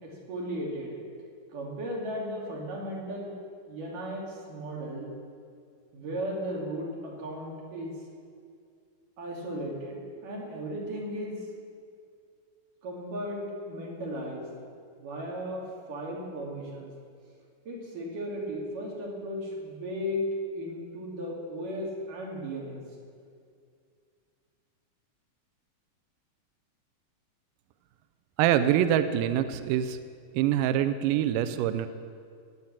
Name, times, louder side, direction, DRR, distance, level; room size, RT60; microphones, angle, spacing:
voice 1, 0.0-1.0 1.5-3.3 3.7-5.1 5.9-7.9 9.2-11.5 12.8-14.5 15.0-15.6 15.9-16.9 17.7-20.2 20.5-22.8, equal, 65° right, -3 dB, 4.1 m, -36 dB
voice 2, 28.4-30.0 30.4-31.9, right 11 dB, 80° right, 11 dB, 2.1 m, -25 dB
19.0 x 7.9 x 7.4 m, 2.3 s
omnidirectional pair, 4.2 m